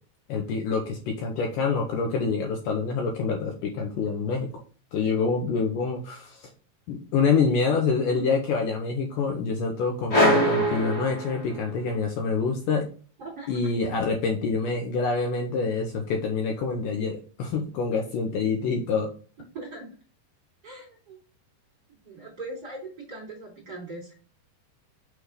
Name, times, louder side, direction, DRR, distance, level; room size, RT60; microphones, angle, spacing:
voice 1, 0.3-4.5 4.9-6.4 6.9-12.9 13.5-19.1, left 4 dB, 70° left, 1 dB, 2.3 m, -26 dB
sound 1, 10.1-11.9, equal, 35° left, 1.6 m, -23 dB
voice 2, 13.2-13.7 19.5-20.0 20.6-21.2 22.0-24.1, right 2 dB, 30° right, -3 dB, 2.7 m, -40 dB
6.2 x 3.5 x 5.0 m, 0.38 s
omnidirectional pair, 4.4 m